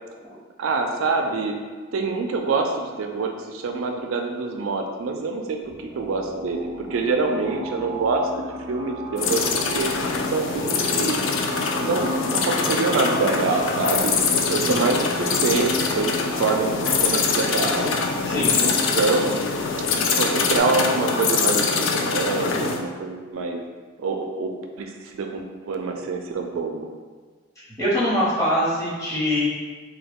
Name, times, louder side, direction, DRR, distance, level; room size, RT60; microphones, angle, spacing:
voice 1, 0.6-1.6 1.9-8.3 8.7-9.4 9.7-9.9 10.3-11.2 11.8-14.1 14.5-17.9 18.6-19.4 20.2-23.6 24.0-24.5 24.8-26.9, right 4 dB, 90° right, 3 dB, 0.4 m, -25 dB
sound 1, 5.6-20.6, equal, 15° right, 0.3 m, -36 dB
sound 2, 9.2-22.8, left 4 dB, 70° left, 0.3 m, -24 dB
voice 2, 27.6-29.5, equal, 15° left, -9 dB, 1.0 m, -23 dB
3.2 x 2.2 x 3.5 m, 1.4 s
head